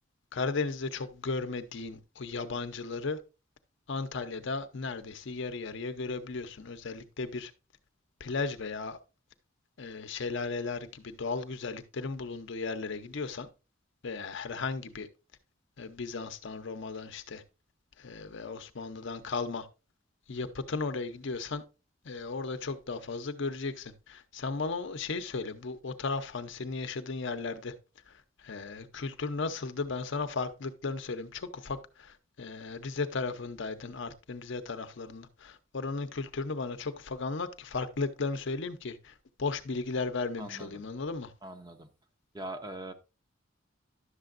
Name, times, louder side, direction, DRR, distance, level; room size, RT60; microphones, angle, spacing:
voice 1, 0.3-3.2 3.9-7.5 8.2-9.0 9.8-13.5 14.0-15.1 15.8-17.4 18.0-19.7 20.3-21.6 22.0-27.7 28.1-39.1 39.4-41.3, left 4 dB, 65° left, 0.7 m, -35 dB
voice 2, 40.4-40.8 41.4-41.9 42.3-42.9, right 1 dB, 20° right, 0.7 m, -42 dB
11.0 x 6.8 x 2.5 m
head